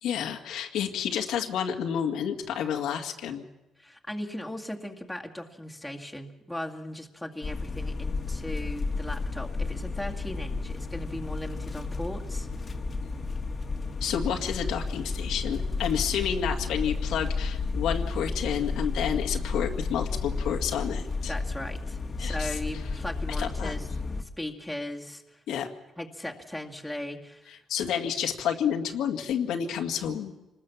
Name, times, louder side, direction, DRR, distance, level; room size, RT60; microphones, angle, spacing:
voice 1, 0.0-3.4 14.0-21.3 22.2-22.6 23.4-23.7 25.5-25.7 27.5-30.3, left 8 dB, 85° left, 2 dB, 2.0 m, -30 dB
voice 2, 3.8-12.5 21.3-23.9 24.2-25.4 26.0-27.6, left 1 dB, 5° left, 1 dB, 2.2 m, -38 dB
sound 1, 7.4-24.2, left 3 dB, 30° left, 1.7 m, -32 dB
27.0 x 20.0 x 7.3 m, 1.0 s
cardioid pair, 125°, 0 cm